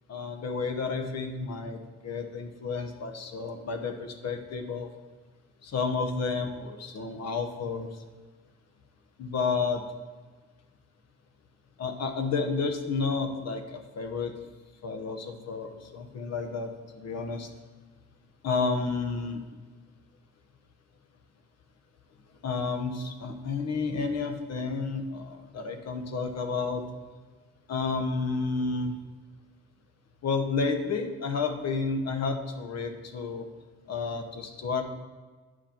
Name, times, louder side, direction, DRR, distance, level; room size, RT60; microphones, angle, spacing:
voice 1, 0.1-4.9 5.6-7.9 9.2-9.8 11.8-14.3 14.8-17.5 18.4-19.4 22.4-26.8 27.7-28.9 30.2-33.5 33.9-34.8, left 4 dB, 60° left, 5 dB, 1.1 m, -31 dB
9.3 x 4.9 x 4.4 m, 1.4 s
cardioid pair, 90°, 30 cm